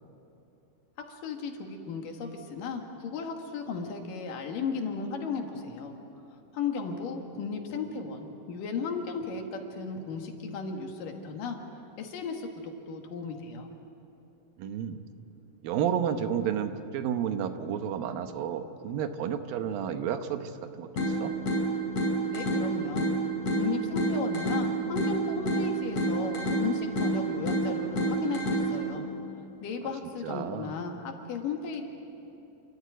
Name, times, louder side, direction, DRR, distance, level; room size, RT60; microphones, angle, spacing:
voice 1, 1.1-5.9 6.5-11.6 12.0-13.7 22.3-23.1 23.6-29.0 29.6-31.9, left 5 dB, 70° left, 4 dB, 3.3 m, -35 dB
voice 2, 14.6-15.0 15.6-20.5 20.8-21.3 30.2-30.7, right 8 dB, 90° right, 9 dB, 2.8 m, -31 dB
sound 1, 21.0-29.0, right 2 dB, 45° left, 6.3 m, -29 dB
28.5 x 13.5 x 9.1 m, 2.9 s
omnidirectional pair, 4.0 m